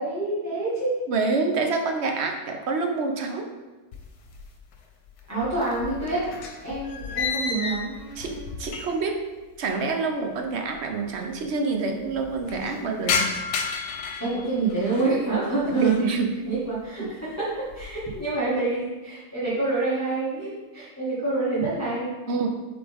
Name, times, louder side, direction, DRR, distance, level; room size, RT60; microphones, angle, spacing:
voice 1, 0.0-0.9 5.3-8.0 14.2-16.1 16.4-22.1, right 3 dB, 10° left, -10 dB, 1.7 m, -27 dB
voice 2, 1.1-3.5 8.2-9.2 9.6-13.3 15.8-16.3 17.0-17.1 22.3-22.5, right 4 dB, 55° right, 4 dB, 0.9 m, -27 dB
sound 1, 3.9-4.8 5.1-9.2 9.4-9.5 10.4-10.5 10.7-10.8 11.1-11.6 12.0-15.2 15.6-16.1 16.6-16.9 17.4-18.3, left 5 dB, 85° left, 1.3 m, -32 dB
7.9 x 4.0 x 3.5 m, 1.2 s
omnidirectional pair, 1.6 m